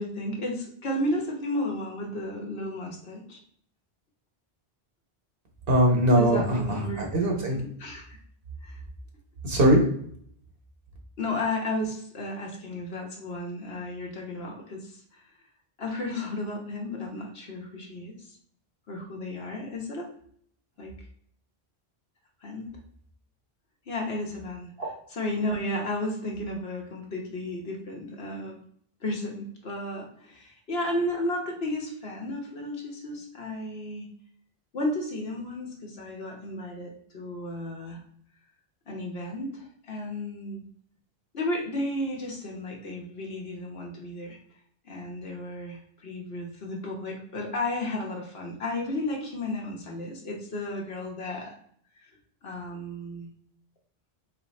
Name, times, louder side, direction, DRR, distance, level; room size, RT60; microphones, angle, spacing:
voice 1, 0.0-3.4 6.2-7.0 7.5-8.2 8.6-8.8 11.2-15.2 15.8-18.3 18.9-20.1 20.8-20.9 22.4-22.7 23.9-24.7 25.1-28.6 29.0-34.1 34.7-38.0 38.9-40.6 41.3-44.4 44.8-51.5 52.0-52.1 52.4-53.3, left 1 dB, 70° left, 0 dB, 1.3 m, -33 dB
voice 2, 5.7-7.6 9.4-9.8 24.8-24.9, right 1 dB, 60° right, 0 dB, 1.3 m, -21 dB
3.9 x 3.0 x 4.1 m, 0.64 s
omnidirectional pair, 1.1 m